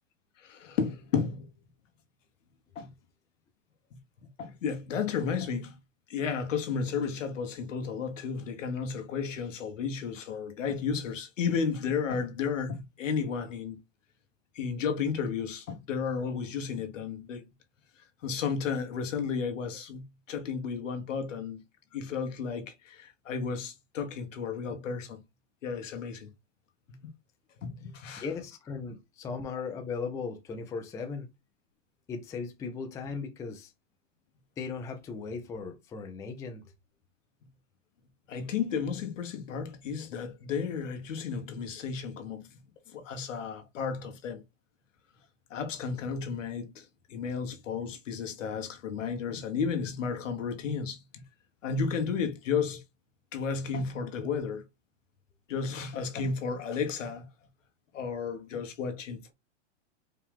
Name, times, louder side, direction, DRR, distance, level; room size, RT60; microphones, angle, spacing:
voice 1, 0.4-1.5 2.7-2.9 4.2-5.7 6.1-13.8 14.5-17.5 18.2-21.6 21.9-25.2 25.6-26.3 27.6-28.2 38.3-42.6 42.9-44.4 45.5-51.2 51.6-52.8 53.3-54.6 55.5-57.3 57.9-59.3, left 6 dB, 80° left, 1.4 m, -33 dB
voice 2, 28.2-31.3 32.1-33.7 34.6-36.7, left 5 dB, 10° left, 0.4 m, -37 dB
4.6 x 2.3 x 3.5 m
hypercardioid pair, 135°, 37 cm